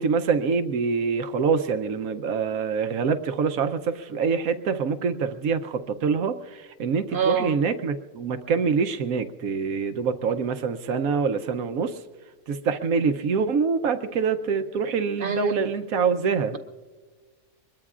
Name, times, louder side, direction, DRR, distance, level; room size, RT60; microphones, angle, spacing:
voice 1, 0.0-12.0 12.5-16.6, right 5 dB, 80° right, 8 dB, 1.2 m, -25 dB
voice 2, 7.1-7.6 15.2-15.5, right 6 dB, 45° right, 7 dB, 0.9 m, -24 dB
24.0 x 21.5 x 2.5 m, 1.5 s
omnidirectional pair, 1.4 m